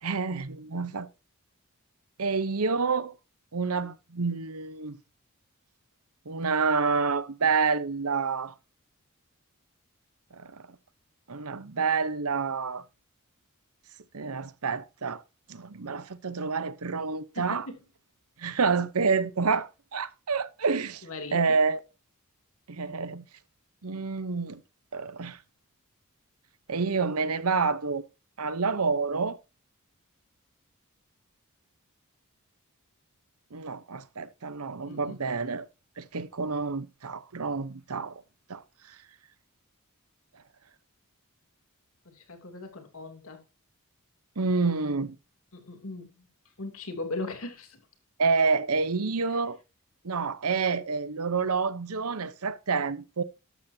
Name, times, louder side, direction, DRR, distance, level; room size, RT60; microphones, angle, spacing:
voice 1, 0.0-1.1 2.2-3.1 3.5-5.0 6.3-8.5 10.3-10.7 11.3-12.8 14.1-15.2 15.5-17.7 18.4-21.1 21.3-21.8 22.7-23.2 23.8-24.6 24.9-25.4 26.7-28.0 28.4-29.4 33.5-35.7 36.0-38.2 38.5-39.0 44.4-45.2 48.2-49.6 50.0-53.2, right 4 dB, 80° right, 0.9 m, -28 dB
voice 2, 17.3-17.8 21.0-21.4 34.9-35.4 42.0-43.4 45.5-46.3 46.6-47.8, left 2 dB, 70° left, 2.9 m, -39 dB
13.0 x 12.0 x 2.8 m
head